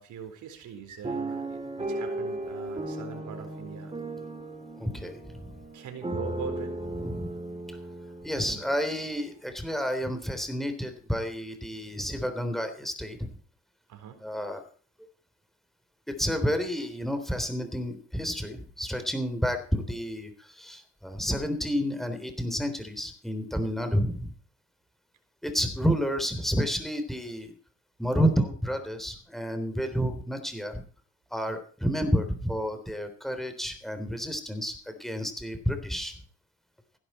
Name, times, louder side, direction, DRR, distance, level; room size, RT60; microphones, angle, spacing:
voice 1, 0.0-3.9 5.7-6.7 13.9-14.2, right 8 dB, 75° right, 7 dB, 4.1 m, -41 dB
sound 1, 1.0-9.1 9.7-9.8 10.1-10.4, right 2 dB, 20° right, 3.2 m, -36 dB
voice 2, 4.8-5.5 6.9-7.3 8.2-13.3 14.2-14.6 16.1-24.3 25.4-27.5 28.0-30.8 31.3-36.1, equal, ahead, 7 dB, 3.5 m, -30 dB
16.5 x 11.0 x 4.4 m, 0.43 s
cardioid pair, 90°, 30 cm